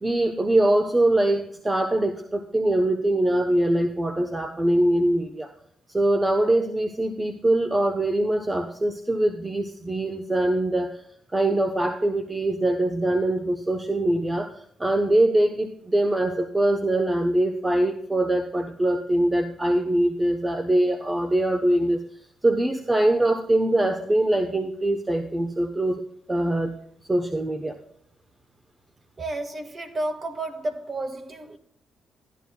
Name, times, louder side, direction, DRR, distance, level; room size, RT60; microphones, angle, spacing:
voice 1, 0.0-5.5 5.9-11.0 11.3-14.5 14.8-22.0 22.4-26.0 26.3-26.7 27.1-27.8, right 1 dB, 20° right, 0.9 m, -23 dB
voice 2, 29.2-31.6, right 2 dB, 35° right, 1.6 m, -31 dB
13.0 x 11.5 x 2.3 m
cardioid pair, 90°, 0 cm